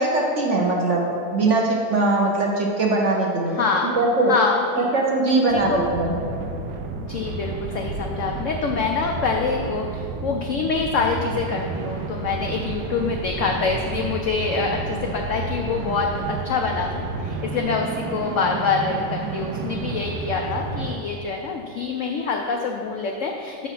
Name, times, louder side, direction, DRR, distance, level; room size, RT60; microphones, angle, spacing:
voice 1, 0.0-3.6 4.0-4.3 4.8-6.2, right 2 dB, 60° right, -1 dB, 0.8 m, -21 dB
voice 2, 3.5-4.0 4.3-4.9 5.3-5.8 7.1-23.7, left 4 dB, 85° left, 2 dB, 0.6 m, -25 dB
sound 1, 5.5-21.0, right 3 dB, 85° right, 1.3 m, -31 dB
6.9 x 4.6 x 5.7 m, 2.5 s
omnidirectional pair, 1.9 m